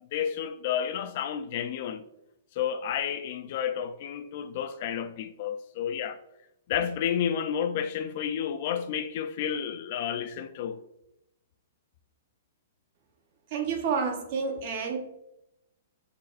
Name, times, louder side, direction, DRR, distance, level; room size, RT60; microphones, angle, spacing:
voice 1, 0.1-2.0 2.6-6.2 6.7-10.8, left 8 dB, 45° left, 0.3 m, -31 dB
voice 2, 13.5-15.0, right 5 dB, 45° right, 0.9 m, -29 dB
5.4 x 4.0 x 2.5 m
hypercardioid pair, 160°, 0 cm